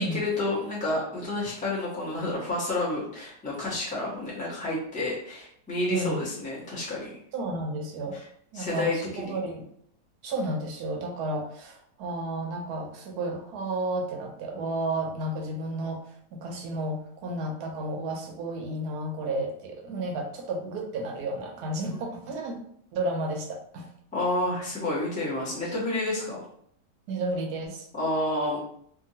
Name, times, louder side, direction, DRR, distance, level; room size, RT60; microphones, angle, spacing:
voice 1, 0.0-7.1 8.1-8.2 8.5-9.3 24.1-26.4 27.9-28.6, left 2 dB, 5° left, -7 dB, 0.6 m, -30 dB
voice 2, 5.9-6.3 7.3-8.2 8.5-9.6 10.2-22.5 22.9-23.9 27.1-27.9, right 2 dB, 75° right, 2 dB, 1.1 m, -32 dB
2.8 x 2.6 x 2.7 m, 0.66 s
omnidirectional pair, 1.8 m